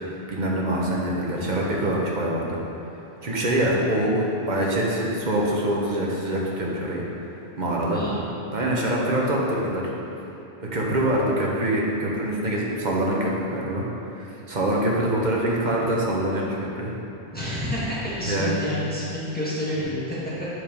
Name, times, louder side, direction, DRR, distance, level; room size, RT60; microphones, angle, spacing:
voice 1, 0.3-2.6 3.2-7.0 7.6-8.0 8.5-9.9 10.6-13.8 14.1-16.5 16.8-16.9 18.2-18.6 19.8-19.9, right 1 dB, 45° right, -3 dB, 1.3 m, -24 dB
voice 2, 3.6-3.9 7.9-8.2 17.3-20.5, left 1 dB, 10° left, -9 dB, 1.6 m, -29 dB
8.4 x 5.0 x 5.3 m, 2.8 s
omnidirectional pair, 1.1 m